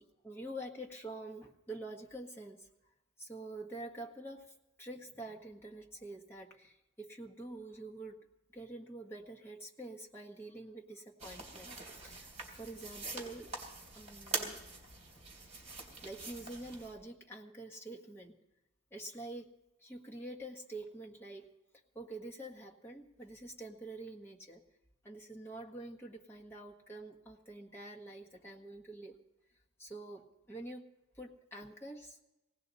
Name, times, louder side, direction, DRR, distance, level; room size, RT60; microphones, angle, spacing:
voice 1, 0.0-2.7 3.2-4.5 4.8-8.2 8.5-12.3 12.5-13.5 13.9-14.6 16.0-18.3 18.9-19.5 19.8-21.5 21.9-24.6 25.0-29.2 29.8-30.8 31.2-32.2, right 1 dB, 10° left, -2 dB, 1.5 m, -47 dB
sound 1, 11.2-16.9, right 3 dB, 30° right, 3.2 m, -44 dB
19.0 x 17.0 x 4.1 m, 0.97 s
head